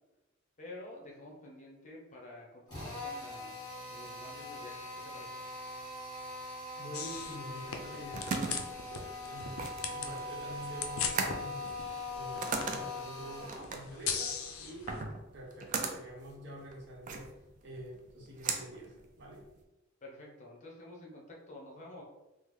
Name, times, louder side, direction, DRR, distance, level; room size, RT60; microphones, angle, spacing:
voice 1, 0.6-5.4 20.0-22.0, left 1 dB, 35° left, -2 dB, 0.8 m, -50 dB
Drill, 2.7-13.7, left 2 dB, 20° left, 1.5 m, -42 dB
voice 2, 6.8-11.7 12.1-17.3 17.6-19.5, equal, 55° right, -2 dB, 0.8 m, -47 dB
sound 1, 6.9-15.0, left 6 dB, 70° left, 0.4 m, -41 dB
sound 2, 7.9-19.6, right 4 dB, 35° right, 0.3 m, -39 dB
3.5 x 2.1 x 3.1 m, 1.0 s
head